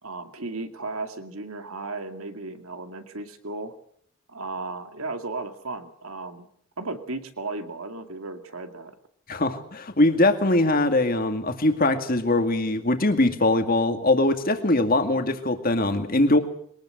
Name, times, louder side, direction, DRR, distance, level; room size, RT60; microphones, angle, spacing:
voice 1, 0.0-3.7 4.3-6.5 6.8-9.0, right 3 dB, 80° right, 7 dB, 2.3 m, -35 dB
voice 2, 9.3-16.4, left 2 dB, 40° left, 7 dB, 2.1 m, -22 dB
22.5 x 19.5 x 7.9 m, 0.67 s
head